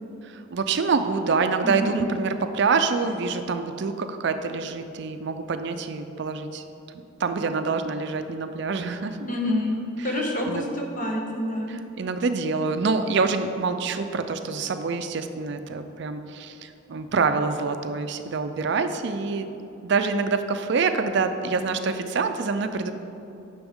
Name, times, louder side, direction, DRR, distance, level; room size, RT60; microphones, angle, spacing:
voice 1, 0.2-6.6 7.2-9.3 10.0-10.2 10.5-10.7 11.7-19.5 19.8-22.9, right 4 dB, 60° right, 8 dB, 0.4 m, -26 dB
voice 2, 9.3-9.8 10.0-11.7, left 1 dB, 40° left, 0 dB, 1.2 m, -27 dB
10.5 x 6.0 x 3.6 m, 2.8 s
head